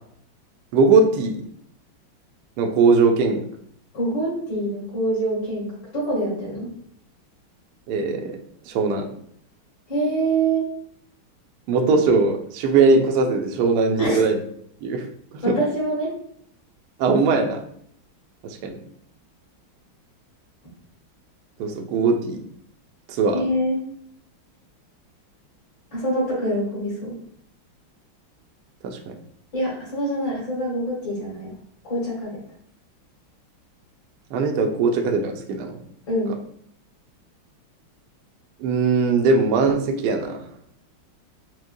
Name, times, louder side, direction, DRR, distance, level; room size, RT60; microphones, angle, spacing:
voice 1, 0.7-1.4 2.6-3.4 7.9-8.4 8.7-9.1 11.7-14.4 14.8-15.5 17.0-17.6 18.4-18.8 21.6-22.4 23.1-23.4 28.8-29.1 34.3-35.8 38.6-40.4, right 4 dB, 75° right, 3 dB, 0.9 m, -20 dB
voice 2, 3.9-6.7 9.9-10.6 14.0-14.2 15.4-16.1 23.3-23.8 25.9-27.1 29.5-31.5 31.9-32.4 36.1-36.3, right 1 dB, 60° left, -6 dB, 2.5 m, -25 dB
6.1 x 2.2 x 2.6 m, 0.66 s
omnidirectional pair, 2.2 m